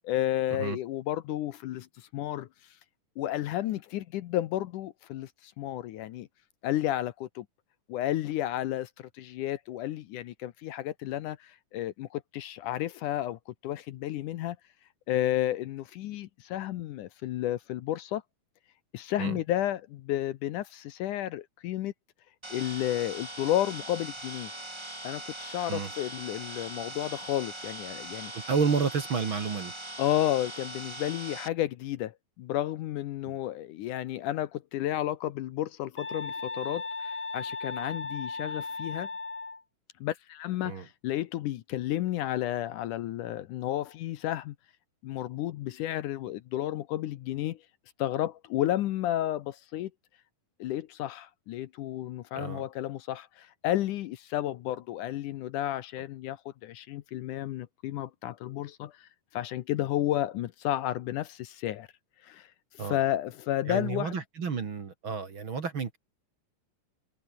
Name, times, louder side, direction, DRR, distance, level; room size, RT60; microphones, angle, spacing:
voice 1, 0.0-2.5 3.2-6.3 6.6-7.5 7.9-14.6 15.1-18.2 18.9-21.9 22.5-24.5 25.0-28.3 30.0-39.1 40.0-44.6 45.0-47.6 48.0-49.9 50.6-61.9 62.2-62.5 62.8-64.2, left 13 dB, 70° left, 2.3 m, -32 dB
sound 1, 22.4-31.5, right 1 dB, 10° right, 2.1 m, -41 dB
voice 2, 28.3-29.7 33.3-33.4 40.6-40.9 52.3-52.7 62.8-63.0 63.7-66.0, right 5 dB, 40° right, 2.6 m, -31 dB
sound 2, 36.0-39.6, left 3 dB, 20° left, 1.6 m, -36 dB
omnidirectional pair, 4.0 m